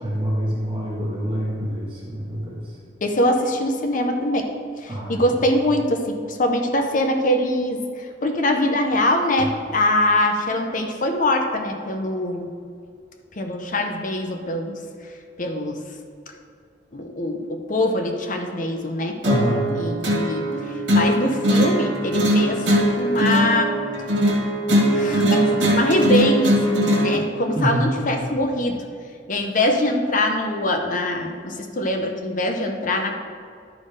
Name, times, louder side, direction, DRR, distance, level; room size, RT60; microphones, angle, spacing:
voice 1, 0.0-2.8 4.9-5.2 19.2-19.7 27.5-27.9, equal, 30° right, -6 dB, 1.6 m, -26 dB
voice 2, 3.0-4.5 4.8-12.5 13.4-14.8 15.4-15.8 16.9-19.2 19.8-20.6 20.9-22.7 23.0-23.8 24.9-28.8 29.3-33.2, left 1 dB, 45° left, 4 dB, 0.7 m, -23 dB
sound 1, 19.2-27.2, equal, 80° right, 1.8 m, -20 dB
12.0 x 4.3 x 4.9 m, 2.2 s
head